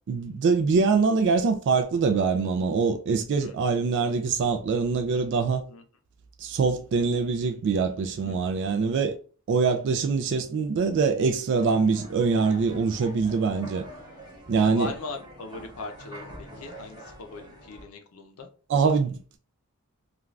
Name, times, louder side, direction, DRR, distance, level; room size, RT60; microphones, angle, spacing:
voice 1, 0.1-5.6 6.4-9.2 9.5-13.9 14.5-14.9 18.7-19.4, right 4 dB, 55° right, 0.3 m, -24 dB
voice 2, 3.4-3.8 5.7-5.8 8.2-8.4 14.7-18.5, left 3 dB, 65° left, 0.6 m, -39 dB
sound 1, 11.6-17.8, equal, 20° right, 0.9 m, -44 dB
2.4 x 2.3 x 3.1 m
head